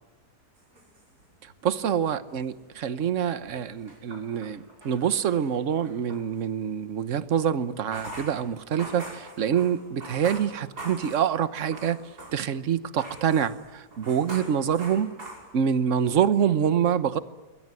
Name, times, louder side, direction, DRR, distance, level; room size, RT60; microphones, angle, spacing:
sound 1, 0.6-1.8 2.1-6.3 7.7-12.6 13.0-15.9, right 1 dB, 65° right, 6.5 m, -43 dB
voice 1, 1.6-12.0 12.3-15.1 15.5-17.2, right 8 dB, 50° right, 13 dB, 1.3 m, -26 dB
27.0 x 21.5 x 9.7 m, 1.2 s
omnidirectional pair, 1.8 m